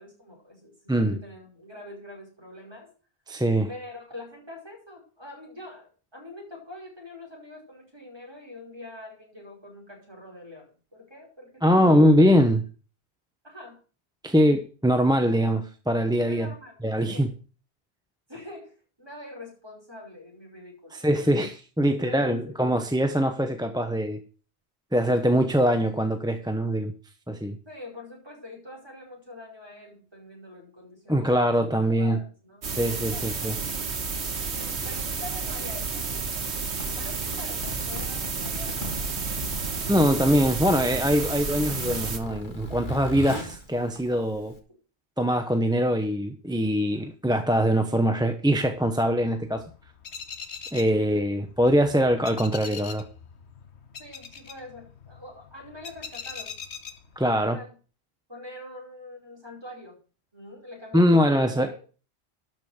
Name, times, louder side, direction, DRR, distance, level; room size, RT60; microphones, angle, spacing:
voice 1, 0.0-2.9 3.7-12.0 13.4-13.8 14.3-14.6 16.3-17.3 18.3-21.5 22.0-22.5 27.7-32.8 33.1-33.6 33.9-34.0 34.5-36.6 36.9-40.1 41.2-41.4 54.0-56.6 57.4-57.8 58.3-60.0 60.3-61.7, left 1 dB, 25° right, 5.1 m, -45 dB
voice 2, 3.3-3.7 11.6-12.6 14.2-16.5 16.8-17.3 20.9-24.2 24.9-26.9 27.3-27.6 31.1-32.2 32.7-33.6 39.9-44.6 45.2-49.6 50.7-53.1 57.2-57.6 60.9-61.7, equal, 5° right, 0.7 m, -22 dB
sound 1, 32.6-42.2, right 5 dB, 85° right, 1.6 m, -31 dB
Zipper (clothing), 36.6-44.6, equal, 45° left, 2.0 m, -38 dB
sound 2, 48.5-57.5, left 6 dB, 85° left, 1.4 m, -43 dB
12.5 x 5.4 x 6.5 m
omnidirectional pair, 1.1 m